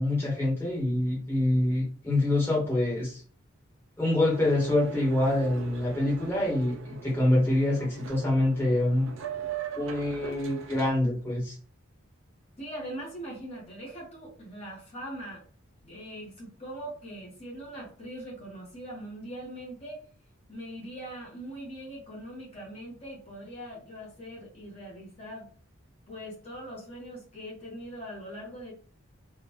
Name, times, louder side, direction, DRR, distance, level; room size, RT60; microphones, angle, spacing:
voice 1, 0.0-3.2 4.0-9.1 9.7-11.6, left 1 dB, 10° left, -5 dB, 1.3 m, -26 dB
Boat Water vehicle, 4.3-10.9, right 7 dB, 80° right, 0.5 m, -41 dB
voice 2, 12.6-15.4 15.8-20.0 20.5-25.5 26.1-28.7, right 1 dB, 30° left, -4 dB, 1.2 m, -41 dB
3.6 x 2.5 x 3.0 m, 0.42 s
head